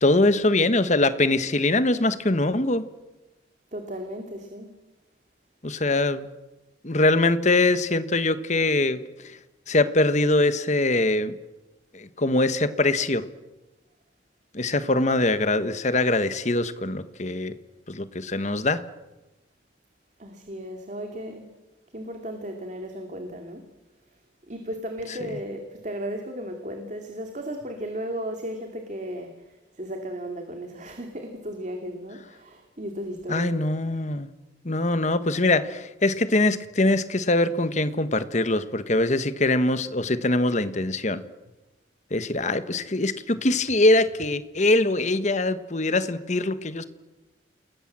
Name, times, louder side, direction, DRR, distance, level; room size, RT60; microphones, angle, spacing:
voice 1, 0.0-2.8 5.6-6.3 6.8-9.0 9.2-9.4 9.7-11.3 11.9-13.2 14.5-17.5 17.9-18.8 33.3-34.3 34.6-41.2 42.1-46.8, left 2 dB, 40° left, 12 dB, 1.4 m, -23 dB
voice 2, 3.7-4.8 20.2-21.5 21.9-23.7 24.5-29.3 29.7-33.6, equal, 40° right, 4 dB, 2.7 m, -35 dB
28.5 x 20.5 x 7.6 m, 1.1 s
head